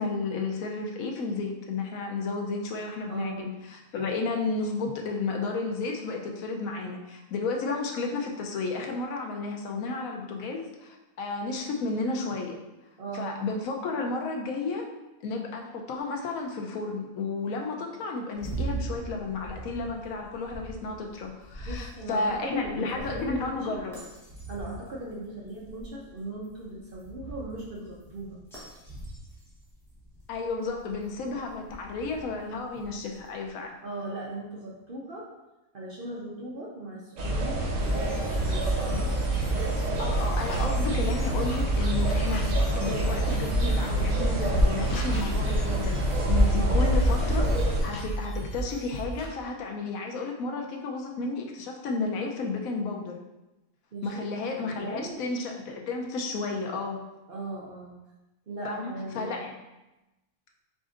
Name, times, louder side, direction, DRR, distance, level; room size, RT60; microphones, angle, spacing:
voice 1, 0.0-12.6 13.1-14.9 15.2-24.0 30.3-33.7 40.0-46.0 46.3-47.6 47.8-53.1 54.0-57.0 58.6-59.5, left 3 dB, 80° left, 2 dB, 1.1 m, -32 dB
voice 2, 3.1-3.4 13.0-13.4 21.6-23.8 24.5-28.4 33.8-35.3 35.7-39.1 46.5-46.9 53.9-55.2 57.3-57.9 58.5-59.3, right 2 dB, 50° right, -4 dB, 0.7 m, -38 dB
sound 1, 18.3-33.5, right 2 dB, ahead, 0.9 m, -42 dB
sound 2, 37.2-47.8, right 1 dB, 70° right, 1.2 m, -26 dB
sound 3, 37.8-49.3, right 2 dB, 65° left, 0.9 m, -32 dB
5.0 x 3.7 x 2.5 m, 1.0 s
omnidirectional pair, 1.5 m